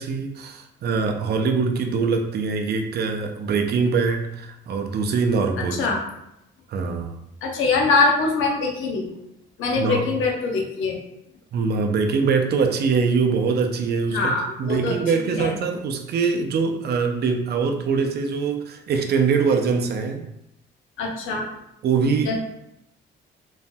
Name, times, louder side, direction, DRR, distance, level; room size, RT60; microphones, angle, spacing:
voice 1, 0.0-5.9 6.7-7.2 9.8-10.1 11.5-14.3 14.6-20.3 21.8-22.4, right 5 dB, 55° right, 5 dB, 0.4 m, -23 dB
voice 2, 7.4-9.1 9.6-11.0 14.1-15.6 21.0-21.5 22.2-22.4, left 3 dB, 85° left, 0 dB, 0.7 m, -23 dB
3.1 x 2.5 x 2.2 m, 0.83 s
cardioid pair, 90°, 20 cm